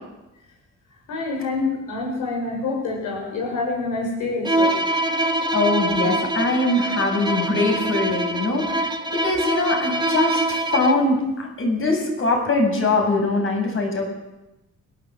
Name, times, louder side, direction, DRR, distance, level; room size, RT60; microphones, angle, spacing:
voice 1, 1.1-4.8, left 3 dB, 90° left, 0 dB, 6.9 m, -26 dB
Bowed string instrument, 4.4-11.1, right 1 dB, 15° right, 1.6 m, -24 dB
voice 2, 5.5-8.8 9.1-14.1, left 2 dB, 45° left, 2 dB, 7.2 m, -22 dB
29.5 x 12.0 x 7.7 m, 0.98 s
cardioid pair, 90°, 30 cm